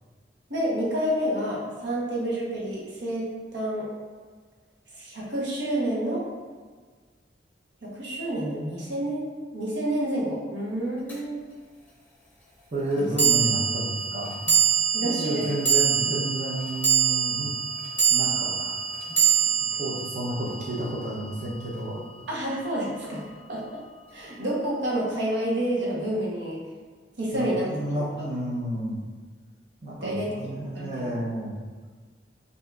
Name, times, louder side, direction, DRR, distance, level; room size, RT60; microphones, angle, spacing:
voice 1, 0.5-3.9 4.9-6.2 7.8-11.4 13.0-13.1 14.9-15.6 22.3-23.2 23.5-23.6 24.1-26.6 27.2-27.7 27.9-28.3 29.9-30.3 30.7-31.2, right 1 dB, 85° right, -4 dB, 1.1 m, -29 dB
sound 1, 11.1-11.2 13.2-21.6, right 7 dB, 10° left, 0.9 m, -25 dB
voice 2, 12.7-14.6 15.0-17.5 18.1-18.8 19.8-22.0 27.3-28.9 29.8-31.7, right 1 dB, 45° right, -6 dB, 0.8 m, -31 dB
5.6 x 2.7 x 2.4 m, 1.5 s
head